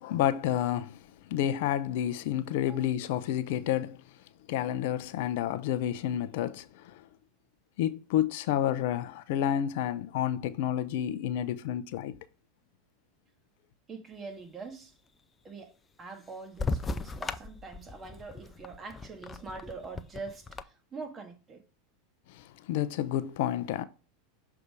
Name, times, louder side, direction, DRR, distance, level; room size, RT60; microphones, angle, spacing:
voice 1, 0.0-1.0 1.3-4.0 4.5-7.0 7.8-12.2 22.3-23.8, left 11 dB, 65° left, 0.6 m, -30 dB
voice 2, 13.9-14.9 15.4-21.6, right 4 dB, 25° right, 1.7 m, -44 dB
sound 1, 16.6-20.6, left 3 dB, 20° left, 0.5 m, -36 dB
6.7 x 3.6 x 4.7 m
hypercardioid pair, 95°, 0 cm